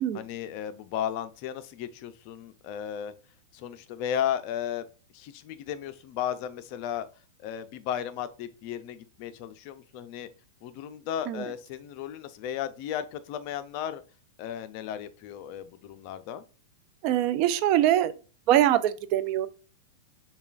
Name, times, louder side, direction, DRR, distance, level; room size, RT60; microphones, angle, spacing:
voice 1, 0.1-3.1 3.5-4.9 5.1-7.1 7.4-10.3 10.6-14.0 14.4-16.4, left 10 dB, 50° left, 0.4 m, -34 dB
voice 2, 17.0-18.1 18.5-19.5, right 12 dB, 45° right, 0.3 m, -23 dB
6.7 x 2.3 x 2.4 m
hypercardioid pair, 130°, 0 cm